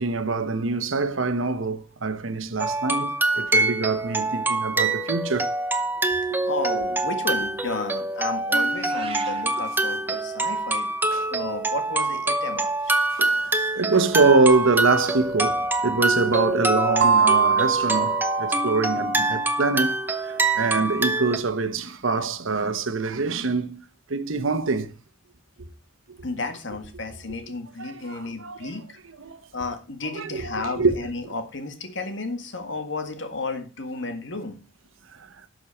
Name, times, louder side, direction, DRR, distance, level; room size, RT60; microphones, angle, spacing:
voice 1, 0.0-5.5 11.1-11.3 13.1-20.0 20.2-23.8 24.1-24.9 27.8-28.7 29.2-29.4 30.1-31.0, right 3 dB, 85° right, 1.0 m, -24 dB
sound 1, 2.6-21.4, right 2 dB, 10° right, 0.7 m, -25 dB
voice 2, 6.4-10.9 11.3-12.8 26.2-29.0 29.5-34.6, left 3 dB, 70° left, 1.7 m, -33 dB
Meow, 8.7-9.4, right 5 dB, 30° right, 1.2 m, -37 dB
sound 2, 17.0-19.5, right 6 dB, 55° right, 0.6 m, -23 dB
12.0 x 6.4 x 4.4 m
head